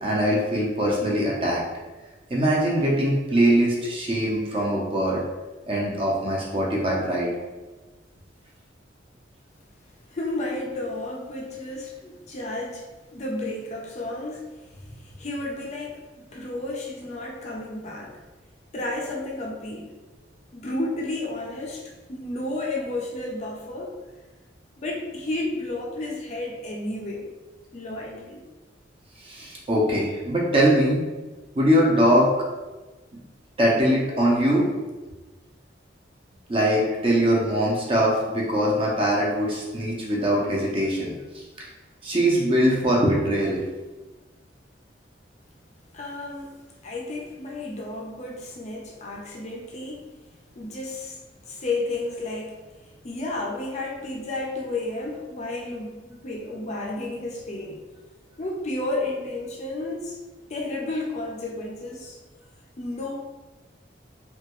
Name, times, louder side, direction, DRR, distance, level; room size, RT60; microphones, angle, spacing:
voice 1, 0.0-1.6 2.3-5.2 5.7-7.3 29.2-31.0 31.6-32.3 33.6-34.7 36.5-41.7 42.0-43.6, equal, 30° right, -3 dB, 0.6 m, -22 dB
voice 2, 10.1-14.5 14.9-18.2 18.7-19.9 20.5-24.0 24.8-27.3 27.7-28.4 45.9-46.5 46.8-50.1 50.6-51.2 51.5-57.8 58.4-60.2 60.5-62.2 62.8-63.1, left 2 dB, 35° left, -1 dB, 0.4 m, -32 dB
2.8 x 2.2 x 2.9 m, 1.2 s
head